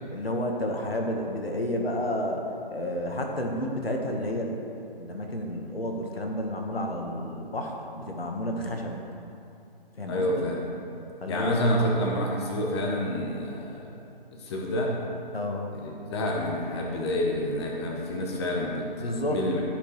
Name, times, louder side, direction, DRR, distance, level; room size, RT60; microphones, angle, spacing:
voice 1, 0.1-2.4 2.7-4.6 5.0-9.1 10.0-10.5 11.2-11.6 15.3-15.7 19.0-19.4, left 1 dB, 85° left, 2 dB, 1.4 m, -31 dB
voice 2, 10.1-10.6 11.3-13.9 14.3-14.9 15.8-19.6, equal, 30° left, -1 dB, 1.0 m, -28 dB
13.0 x 5.4 x 3.2 m, 2.7 s
figure-of-eight pair, 145°, 29 cm